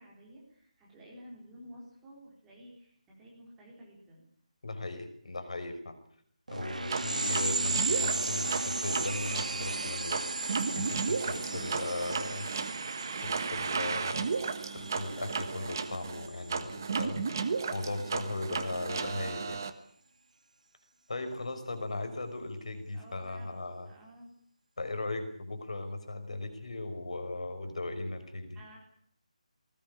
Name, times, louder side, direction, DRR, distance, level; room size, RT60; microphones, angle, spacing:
voice 1, 0.0-4.2 22.9-24.3 28.5-28.8, equal, 5° right, -5 dB, 4.0 m, -52 dB
voice 2, 4.6-6.0 6.5-10.2 10.7-12.5 13.2-14.3 14.7-19.6 21.1-23.9 24.8-28.6, left 2 dB, 60° left, 9 dB, 5.5 m, -37 dB
sound 1, 6.5-16.6, right 3 dB, 80° right, 3.3 m, -35 dB
sound 2, 6.9-19.7, right 5 dB, 30° right, 1.4 m, -34 dB
20.0 x 19.5 x 8.7 m, 0.63 s
figure-of-eight pair, 180°, 4 cm